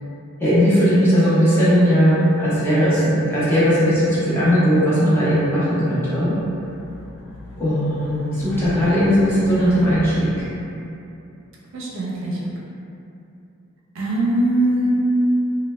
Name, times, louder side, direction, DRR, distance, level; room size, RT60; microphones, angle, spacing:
voice 1, 0.4-6.4 7.6-10.5, equal, 10° left, -11 dB, 0.5 m, -18 dB
Race car auto racing, 6.2-10.5, left 1 dB, 80° left, 0.4 m, -36 dB
voice 2, 6.6-6.9 11.7-12.5 13.9-14.9, right 1 dB, 65° right, -5 dB, 0.5 m, -22 dB
3.1 x 2.1 x 2.2 m, 2.7 s
head